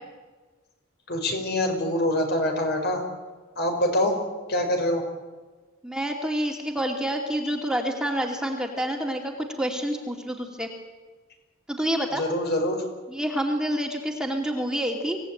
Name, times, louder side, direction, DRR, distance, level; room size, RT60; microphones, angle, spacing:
voice 1, 1.1-3.0 3.6-4.2 4.5-5.0 12.2-12.8, left 1 dB, 55° left, 4 dB, 5.5 m, -25 dB
voice 2, 5.8-10.7 11.7-12.2 13.1-15.2, equal, 5° right, 2 dB, 2.5 m, -28 dB
25.5 x 17.5 x 9.2 m, 1.3 s
head